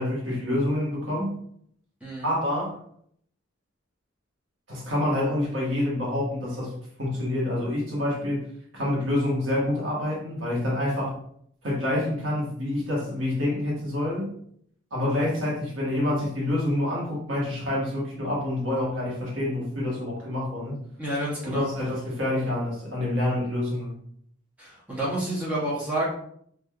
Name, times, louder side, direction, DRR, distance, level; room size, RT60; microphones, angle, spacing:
voice 1, 0.0-1.4 2.2-2.8 4.7-8.5 8.7-11.2 11.6-14.3 14.9-20.8 21.4-24.0, left 1 dB, 70° right, -4 dB, 1.1 m, -27 dB
voice 2, 2.0-2.3 21.0-21.7 24.6-26.1, right 1 dB, 5° right, -7 dB, 0.7 m, -29 dB
3.1 x 2.4 x 2.3 m, 0.66 s
head